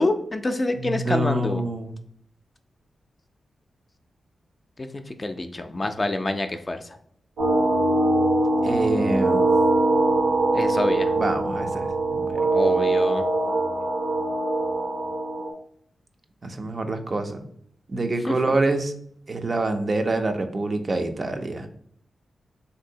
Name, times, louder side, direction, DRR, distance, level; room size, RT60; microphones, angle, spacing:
voice 1, 0.0-1.6 4.8-4.9 5.2-6.8 10.5-11.1 12.5-13.2 18.3-18.5, left 2 dB, 35° left, 7 dB, 0.4 m, -26 dB
voice 2, 0.7-1.9 8.6-9.5 11.1-12.4 16.4-17.4 17.9-18.9 19.3-21.7, right 2 dB, 50° right, 6 dB, 0.4 m, -26 dB
sound 1, 7.4-15.5, right 2 dB, 75° right, 0.8 m, -22 dB
3.2 x 2.6 x 2.7 m, 0.66 s
supercardioid pair, 40°, 0 cm